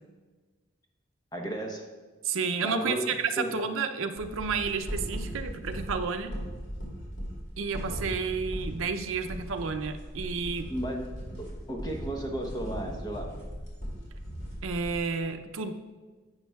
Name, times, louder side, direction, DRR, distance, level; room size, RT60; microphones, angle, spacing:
voice 1, 1.3-1.8 2.6-3.1 3.4-3.5 10.7-11.1 11.4-13.3, right 1 dB, 20° left, 1 dB, 0.9 m, -34 dB
voice 2, 2.2-6.3 7.6-10.7 14.6-15.7, right 5 dB, 80° right, 6 dB, 0.6 m, -31 dB
sound 1, 4.2-15.0, equal, 60° left, 2.4 m, -38 dB
10.5 x 7.9 x 2.3 m, 1.3 s
head